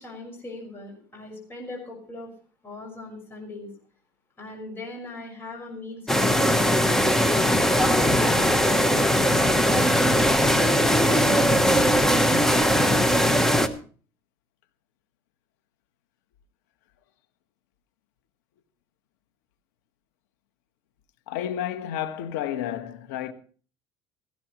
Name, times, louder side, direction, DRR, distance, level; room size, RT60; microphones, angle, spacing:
voice 1, 0.0-2.3 2.6-3.7 4.4-6.9 7.2-9.2 9.6-12.1, left 2 dB, 25° left, 6.0 m, -39 dB
sound 1, 6.1-13.7, equal, 5° left, 1.2 m, -20 dB
voice 2, 21.3-23.3, left 10 dB, 85° left, 1.6 m, -31 dB
16.5 x 16.0 x 3.2 m
cardioid pair, 130°, 10 cm